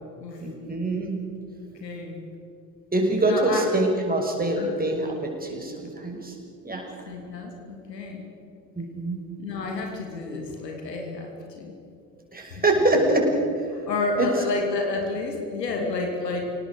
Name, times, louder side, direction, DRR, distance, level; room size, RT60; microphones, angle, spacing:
voice 1, 0.4-1.1 2.9-6.4 6.6-7.0 8.7-9.2 12.3-13.3 14.2-14.3, right 2 dB, 20° right, 1 dB, 6.1 m, -24 dB
voice 2, 1.8-2.2 3.2-3.6 4.6-4.7 7.1-8.2 9.4-11.7 12.9-13.0 13.9-16.4, left 3 dB, 80° left, 2 dB, 2.9 m, -30 dB
27.5 x 18.5 x 6.8 m, 2.6 s
figure-of-eight pair, 50°, 49 cm